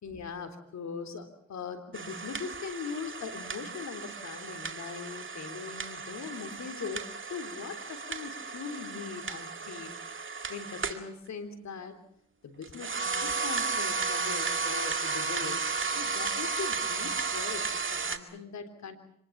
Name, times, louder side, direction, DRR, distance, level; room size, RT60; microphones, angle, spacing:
voice 1, 0.0-10.0 10.5-12.0 12.4-19.0, left 5 dB, 65° left, 6 dB, 3.5 m, -41 dB
sound 1, 1.9-11.1 12.6-18.2, right 4 dB, 45° right, 2.2 m, -34 dB
25.5 x 20.0 x 7.3 m, 0.71 s
supercardioid pair, 40°, 29 cm